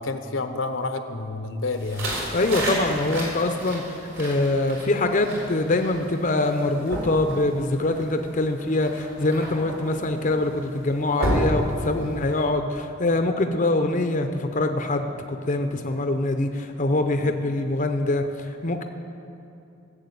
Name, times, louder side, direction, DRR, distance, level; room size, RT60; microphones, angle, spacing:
voice 1, 0.0-2.1 11.9-12.5 17.1-17.4, left 3 dB, 75° left, 8 dB, 0.8 m, -30 dB
sound 1, 1.7-12.4, equal, 85° right, 4.0 m, -32 dB
voice 2, 2.3-18.8, left 2 dB, 40° left, 6 dB, 0.6 m, -24 dB
15.0 x 7.3 x 8.3 m, 2.7 s
head